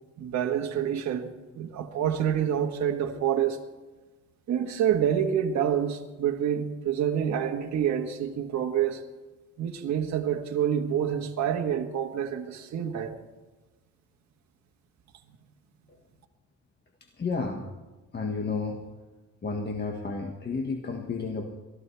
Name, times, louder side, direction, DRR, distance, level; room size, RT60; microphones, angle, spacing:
voice 1, 0.2-1.3 1.5-3.6 4.5-9.0 9.6-13.2, right 9 dB, 65° right, 2 dB, 1.5 m, -27 dB
voice 2, 17.2-17.6 18.1-18.8 19.4-21.4, left 4 dB, 35° left, 3 dB, 1.7 m, -31 dB
22.5 x 14.5 x 3.4 m, 1.2 s
cardioid pair, 90°, 30 cm